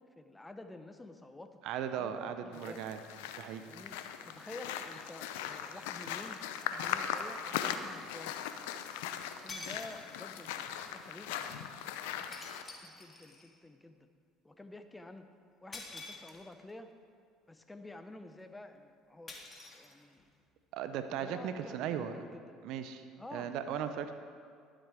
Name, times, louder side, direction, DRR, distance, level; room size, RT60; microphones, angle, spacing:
voice 1, 0.2-1.6 1.9-2.2 2.4-2.8 3.6-4.0 4.2-8.4 9.4-11.7 12.1-12.4 12.8-14.1 14.4-15.3 15.6-16.9 17.5-19.4 19.7-20.2 21.2-22.6 23.2-23.5, left 2 dB, 15° left, 8 dB, 0.8 m, -50 dB
voice 2, 1.6-3.0 3.4-3.6 20.7-22.1 22.6-23.0 23.3-24.1, right 9 dB, 65° right, 9 dB, 0.6 m, -37 dB
sound 1, 2.5-12.6, left 9 dB, 80° left, 0.5 m, -39 dB
sound 2, 9.5-10.4 12.3-13.6 15.7-16.7 19.3-20.4, left 3 dB, 30° left, 1.8 m, -48 dB
12.0 x 7.6 x 4.9 m, 2.2 s
hypercardioid pair, 65°, 0 cm